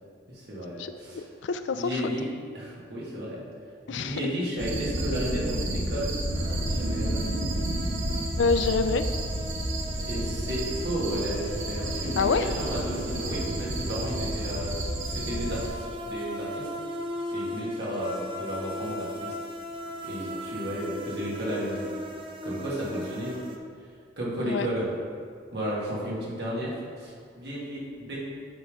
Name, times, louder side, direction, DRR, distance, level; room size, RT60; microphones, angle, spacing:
voice 1, 0.3-1.3 1.7-2.3 2.5-3.4 3.9-7.2 10.1-14.7 15.0-16.7 17.3-19.3 20.0-21.9 22.4-23.4 24.2-24.9 25.5-28.2, equal, 60° right, -6 dB, 1.9 m, -33 dB
voice 2, 0.8-1.9 3.9-4.2 8.4-9.0 12.2-12.5 24.4-24.7, left 4 dB, 75° left, 10 dB, 0.4 m, -26 dB
sound 1, 4.6-15.7, right 1 dB, 80° right, 1.0 m, -31 dB
sound 2, 6.3-23.6, equal, 25° right, 0.5 m, -38 dB
8.2 x 3.6 x 4.9 m, 2.1 s
head